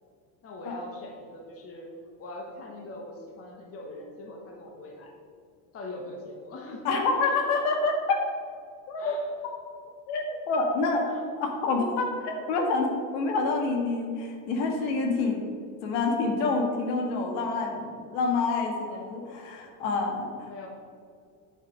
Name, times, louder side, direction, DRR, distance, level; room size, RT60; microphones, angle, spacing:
voice 1, 0.4-1.9 2.2-5.1 5.7-7.4 9.0-9.2 11.1-11.2 20.5-20.7, left 1 dB, 30° left, 1 dB, 1.2 m, -41 dB
voice 2, 6.8-8.2 8.9-9.1 10.1-11.1 11.4-15.5 15.8-20.5, left 3 dB, 65° left, 2 dB, 1.9 m, -27 dB
8.2 x 6.5 x 5.1 m, 2.3 s
supercardioid pair, 135°, 48 cm